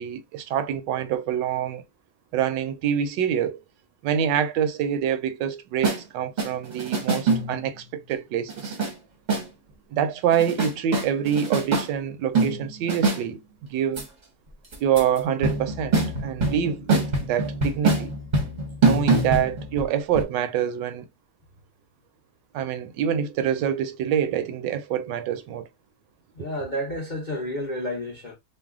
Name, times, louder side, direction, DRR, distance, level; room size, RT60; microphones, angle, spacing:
voice 1, 0.0-1.8 2.3-3.6 4.0-8.8 9.9-14.0 14.8-18.1 18.8-21.0 22.5-25.7, right 9 dB, 80° right, 1.2 m, -26 dB
sound 1, 5.8-6.0 6.4-7.7 8.5-8.9 9.3-9.5 10.3-11.9 12.3-13.2 14.0-14.1 14.7-15.2 15.4-19.9 20.2-20.3, right 3 dB, 40° right, 0.7 m, -24 dB
voice 2, 26.4-28.4, equal, 50° left, 0.5 m, -30 dB
3.2 x 2.0 x 3.5 m
omnidirectional pair, 1.9 m